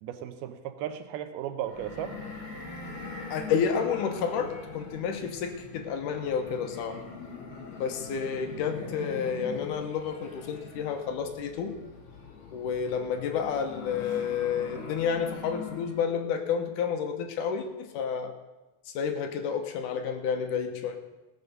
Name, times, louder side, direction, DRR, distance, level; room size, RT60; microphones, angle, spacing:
voice 1, 0.0-2.1, right 11 dB, 85° right, 10 dB, 2.7 m, -35 dB
sound 1, 1.6-16.2, left 4 dB, 40° left, 3.8 m, -42 dB
voice 2, 3.3-7.0 7.8-11.8 12.5-18.4 18.9-21.0, left 7 dB, 70° left, 6 dB, 2.3 m, -30 dB
18.0 x 7.1 x 6.6 m, 1.1 s
omnidirectional pair, 4.3 m